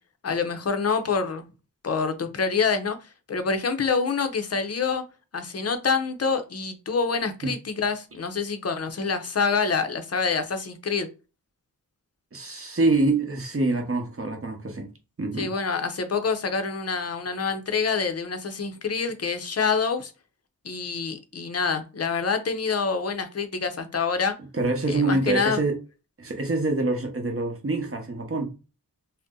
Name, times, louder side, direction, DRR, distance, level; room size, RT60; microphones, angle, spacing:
voice 1, 0.2-1.4 1.8-5.0 5.3-11.1 15.4-20.1 20.6-24.3 24.9-25.6, left 5 dB, 40° left, 0.6 m, -26 dB
voice 2, 12.3-14.9 15.2-15.5 24.5-25.8 26.2-28.6, right 2 dB, 35° right, 0.8 m, -25 dB
2.7 x 2.0 x 3.6 m
wide cardioid pair, 100°, 37 cm